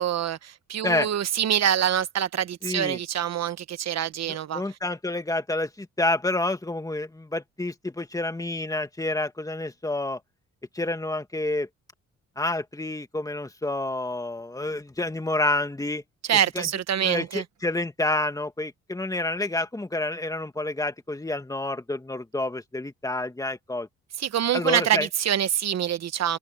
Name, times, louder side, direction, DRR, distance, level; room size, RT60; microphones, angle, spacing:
voice 1, 0.0-4.6 16.3-17.4 24.2-26.4, right 10 dB, 60° right, 1.3 m, -25 dB
voice 2, 2.6-3.0 4.3-10.2 10.7-11.7 12.4-16.0 16.5-16.7 17.0-23.9 24.5-25.1, left 2 dB, 10° left, 2.4 m, -28 dB
open air
cardioid pair, 90°, 30 cm